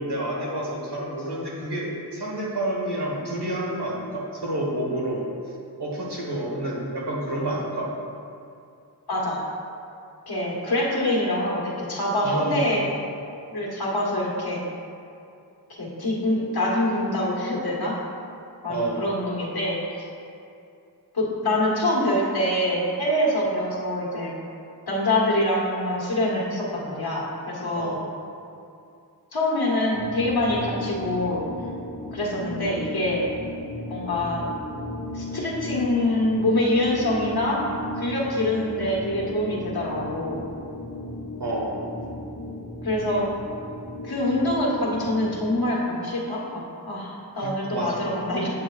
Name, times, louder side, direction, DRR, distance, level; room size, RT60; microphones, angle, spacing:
voice 1, 0.0-5.3 5.8-7.9 12.2-12.7 18.7-19.0 27.7-28.1 41.4-41.8 47.4-48.0, right 1 dB, 85° right, -4 dB, 1.5 m, -29 dB
voice 2, 9.1-9.4 10.3-12.9 13.5-14.6 15.8-18.0 18.6-20.1 21.1-24.3 24.9-28.0 29.3-31.4 32.1-33.3 33.9-34.4 35.1-37.6 37.9-40.4 42.8-43.3 44.0-48.5, left 1 dB, 65° left, -4 dB, 1.6 m, -25 dB
sound 1, 29.9-45.6, left 1 dB, 45° left, 1.1 m, -35 dB
8.7 x 7.3 x 2.4 m, 2.5 s
wide cardioid pair, 50°, 39 cm